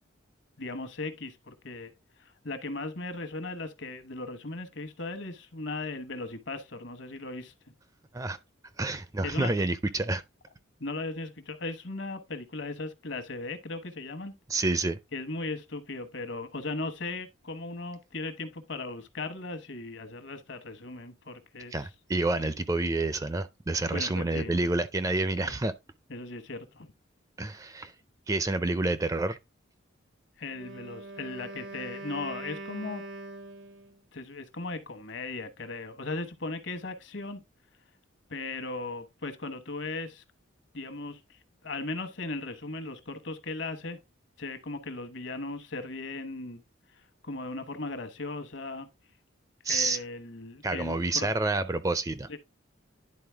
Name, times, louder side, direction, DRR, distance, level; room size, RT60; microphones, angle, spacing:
voice 1, 0.6-1.9 2.2-7.5 9.2-9.6 10.8-14.3 15.1-21.9 23.9-24.5 25.3-25.5 26.1-26.9 30.4-33.1 34.1-37.4 38.3-40.2 40.7-44.0 44.4-46.6 46.9-48.9 49.7-51.3 52.3-52.4, left 3 dB, 65° left, 1.1 m, -37 dB
voice 2, 8.8-10.2 14.5-15.0 21.7-25.7 27.4-27.9 28.3-29.4 49.6-50.0 50.6-52.3, right 2 dB, 15° right, 0.4 m, -28 dB
Wind instrument woodwind instrument, 30.5-34.0, right 2 dB, 85° right, 1.0 m, -42 dB
10.5 x 4.1 x 3.4 m
head